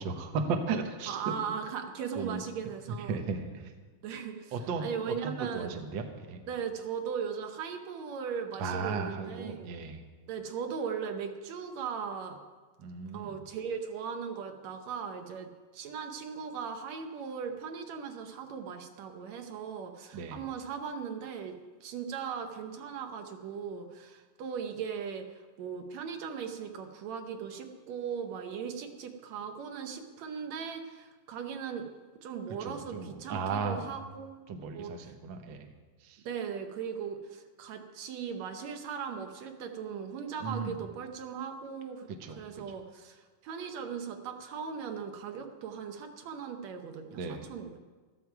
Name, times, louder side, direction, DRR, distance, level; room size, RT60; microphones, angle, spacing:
voice 1, 0.0-1.2 2.1-2.4 3.0-3.7 4.5-6.4 8.6-10.1 12.8-13.4 20.1-20.4 32.5-33.9 34.5-35.7 36.0-36.2 40.4-40.8 42.1-42.4 42.7-42.8 47.1-47.5, right 4 dB, 85° right, 4 dB, 1.0 m, -36 dB
voice 2, 1.1-3.2 4.0-4.5 4.8-5.8 6.5-9.7 10.3-12.4 13.1-21.6 21.8-25.3 25.6-31.9 32.2-34.4 34.7-34.9 36.3-42.1 42.4-47.8, right 6 dB, 65° right, 6 dB, 2.0 m, -38 dB
15.0 x 13.5 x 4.7 m, 1.4 s
omnidirectional pair, 3.9 m